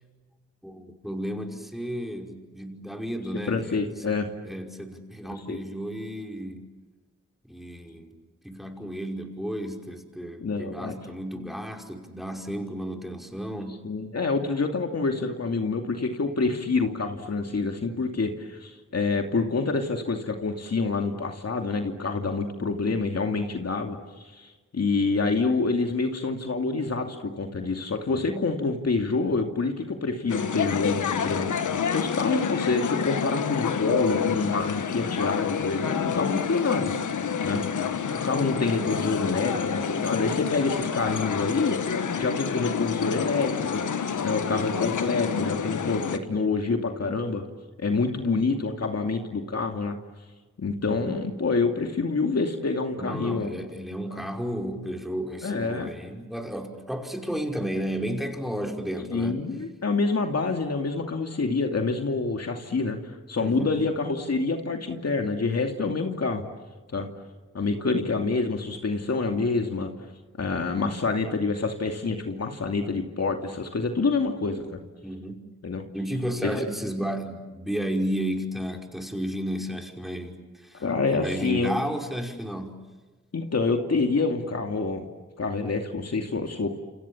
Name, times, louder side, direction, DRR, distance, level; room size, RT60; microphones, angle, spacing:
voice 1, 0.6-4.2 4.4-6.7 7.5-8.2 8.4-13.8 28.1-28.5 37.4-37.8 50.8-51.2 53.0-59.5 63.4-63.7 75.0-75.4 75.9-80.8 81.1-82.8, equal, ahead, 2 dB, 5.4 m, -33 dB
voice 2, 3.5-4.3 5.5-5.6 10.4-10.9 13.8-24.0 24.3-31.5 31.9-36.9 37.4-37.6 38.2-41.8 42.1-43.8 44.2-47.4 47.8-50.0 50.6-53.5 55.4-55.9 59.1-66.5 66.9-67.1 67.5-69.9 70.4-74.7 75.6-75.8 76.4-76.7 80.7-81.8 83.3-85.1 85.4-86.7, left 3 dB, 55° left, 4 dB, 2.6 m, -27 dB
sound 1, 30.3-46.2, left 7 dB, 80° left, 1.5 m, -28 dB
28.5 x 28.5 x 7.3 m, 1.3 s
cardioid pair, 60°, 30 cm